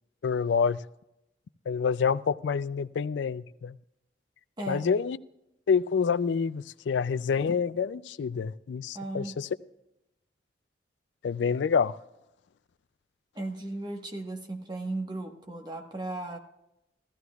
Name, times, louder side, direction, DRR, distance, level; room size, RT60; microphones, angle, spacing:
voice 1, 0.2-0.8 1.7-3.8 4.7-5.2 5.7-9.5 11.2-12.0, left 6 dB, 80° left, 16 dB, 0.4 m, -27 dB
voice 2, 4.6-4.9 8.9-9.4 13.3-16.4, right 2 dB, 25° right, 2 dB, 1.3 m, -36 dB
15.5 x 14.0 x 2.3 m, 0.86 s
head